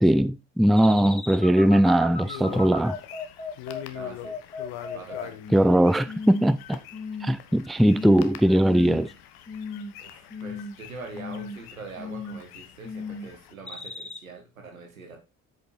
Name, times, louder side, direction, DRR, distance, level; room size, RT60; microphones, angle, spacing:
voice 1, 0.0-3.0 5.5-6.8 7.2-9.1, right 1 dB, ahead, 0.4 m, -20 dB
sound 1, 0.8-5.7 6.1-6.5 6.9-7.4 7.8-8.2 8.6-9.1 9.5-10.0 10.3-10.8 11.1-11.6 12.0-12.5 12.8-13.3 13.7-14.2, left 4 dB, 15° left, 1.5 m, -36 dB
sound 2, 2.1-13.5, left 12 dB, 70° left, 1.1 m, -44 dB
voice 2, 3.9-4.4 4.9-5.6 10.0-15.2, right 3 dB, 90° right, 1.7 m, -43 dB
8.1 x 6.5 x 4.3 m
figure-of-eight pair, 45°, 40 cm